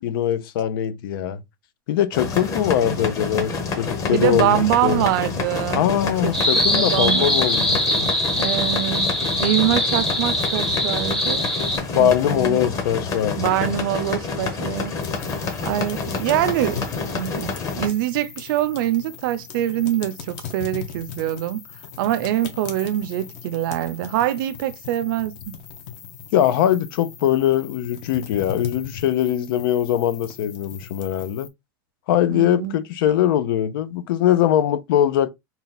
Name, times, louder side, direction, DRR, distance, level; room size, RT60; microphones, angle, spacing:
voice 1, 0.0-1.4 1.9-5.0 5.7-8.1 11.9-13.7 26.3-31.5 32.1-35.3, left 11 dB, 90° left, 0.6 m, -21 dB
sound 1, 2.1-17.9, left 4 dB, 30° left, 0.9 m, -28 dB
voice 2, 4.1-5.9 6.2-6.3 6.7-7.3 8.4-9.1 9.4-11.5 11.9-12.7 13.4-14.9 15.2-16.8 17.1-21.6 22.0-25.5 32.3-32.8, right 13 dB, 75° right, 0.6 m, -24 dB
sound 2, 6.3-11.8, equal, 5° left, 0.7 m, -22 dB
sound 3, 15.0-31.5, left 8 dB, 60° left, 1.0 m, -38 dB
4.0 x 2.3 x 3.9 m
supercardioid pair, 155°, 11 cm